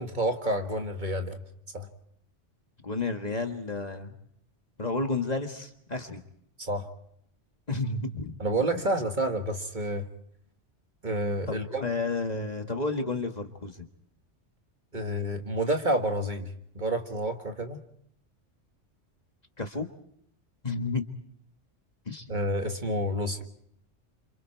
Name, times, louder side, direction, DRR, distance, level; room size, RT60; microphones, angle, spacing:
voice 1, 0.0-1.4 1.7-1.9 6.6-6.9 8.4-10.1 11.0-11.9 14.9-17.8 22.3-23.4, right 1 dB, 40° right, 5 dB, 1.8 m, -29 dB
voice 2, 2.8-4.1 4.8-6.2 7.7-8.3 8.7-8.8 11.5-13.8 19.6-19.9 20.6-21.0 22.1-22.4, left 3 dB, 35° left, 5 dB, 1.8 m, -31 dB
29.5 x 27.0 x 4.6 m, 0.70 s
omnidirectional pair, 1.2 m